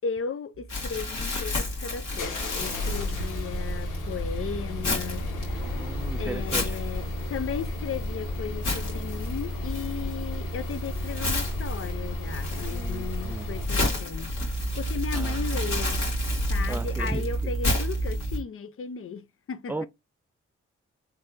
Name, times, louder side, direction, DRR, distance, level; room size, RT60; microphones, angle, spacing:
voice 1, 0.0-5.7 6.2-16.0 16.5-19.9, left 6 dB, 45° left, 0.5 m, -36 dB
sound 1, 0.5-18.4, right 3 dB, 60° right, 0.6 m, -36 dB
Crumpling crinkling, 0.7-18.4, left 2 dB, 65° left, 1.6 m, -32 dB
sound 2, 1.2-13.8, equal, 85° left, 0.8 m, -34 dB
voice 2, 5.7-6.8 12.7-13.5 15.1-15.4 16.7-17.2 19.7-19.9, right 2 dB, 5° right, 0.4 m, -36 dB
3.3 x 2.2 x 2.7 m
supercardioid pair, 45°, 30 cm